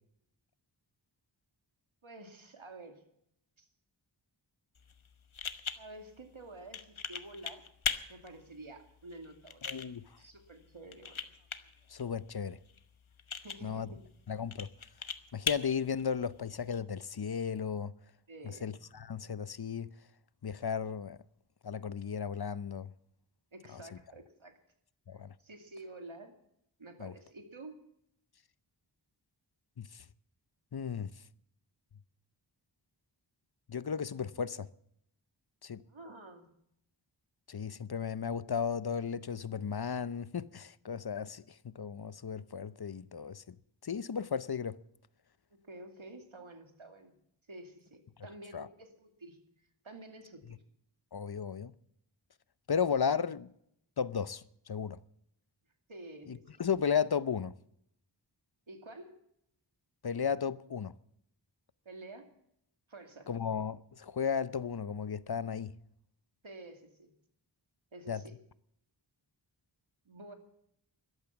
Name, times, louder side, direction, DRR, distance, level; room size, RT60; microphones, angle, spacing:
voice 1, 2.0-3.0 3.6-3.7 5.8-7.6 8.1-9.8 10.2-11.2 13.4-14.0 18.3-18.7 23.5-24.6 25.1-26.3 26.8-27.8 35.9-36.5 45.6-47.1 47.5-49.4 49.8-50.6 55.9-56.6 58.7-59.2 61.8-62.3 62.9-63.3 66.4-67.1 67.9-68.3 70.1-70.4, right 2 dB, 85° right, 2.4 m, -50 dB
sound 1, 4.7-16.8, left 6 dB, 90° left, 1.1 m, -42 dB
voice 2, 9.7-10.1 11.9-12.6 13.6-13.9 14.3-14.7 15.3-17.9 18.4-19.9 20.4-21.2 21.6-22.9 25.1-25.3 27.0-27.1 29.8-30.0 30.7-31.1 33.7-34.7 35.6-35.8 37.5-41.4 41.8-43.5 43.8-44.8 48.5-48.7 51.1-51.7 52.7-53.5 54.0-55.0 56.3-57.5 60.0-60.9 63.3-65.7 68.1-68.2, left 7 dB, 55° left, 0.7 m, -34 dB
13.5 x 12.5 x 7.2 m
wide cardioid pair, 45°, 47 cm